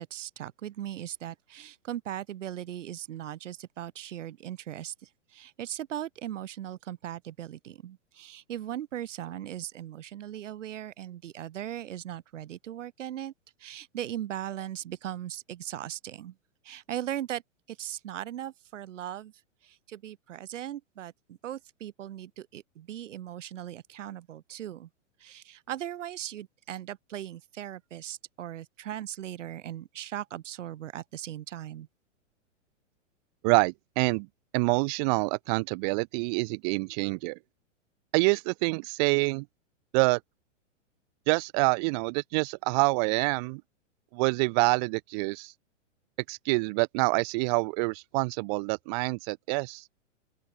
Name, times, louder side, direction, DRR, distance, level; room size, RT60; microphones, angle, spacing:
voice 1, 0.0-13.3 13.6-16.3 16.6-17.4 17.7-19.3 19.6-24.9 25.2-31.9, right 11 dB, 75° right, 0.9 m, -38 dB
voice 2, 33.4-34.3 34.5-37.4 38.1-39.4 39.9-40.2 41.3-43.6 44.1-45.5 46.3-49.8, right 30 dB, 35° right, 0.6 m, -26 dB
open air
hypercardioid pair, 115°, 38 cm